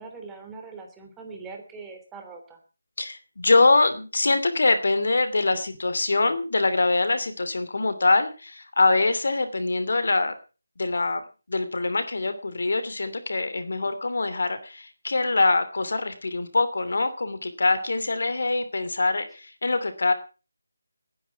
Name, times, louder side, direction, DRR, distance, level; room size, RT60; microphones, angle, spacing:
voice 1, 0.0-2.6, right 4 dB, 10° right, 3 dB, 3.2 m, -41 dB
voice 2, 3.0-10.3 10.8-11.2 11.5-20.1, left 3 dB, 60° left, 11 dB, 2.8 m, -24 dB
19.5 x 10.5 x 5.9 m, 0.35 s
figure-of-eight pair, 160°, 0 cm